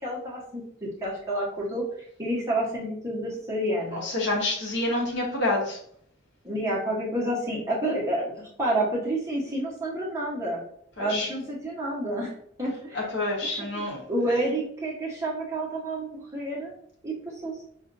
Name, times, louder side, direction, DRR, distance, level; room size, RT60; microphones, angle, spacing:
voice 1, 0.0-1.8 2.2-4.0 6.4-10.6 11.0-12.3 12.6-13.0 13.4-13.7 14.1-16.7 17.0-17.5, right 1 dB, 15° right, -5 dB, 1.0 m, -29 dB
voice 2, 3.9-5.8 11.0-11.3 12.9-14.0 14.3-14.4, left 2 dB, 55° left, -1 dB, 1.1 m, -28 dB
5.4 x 2.5 x 2.6 m, 0.64 s
head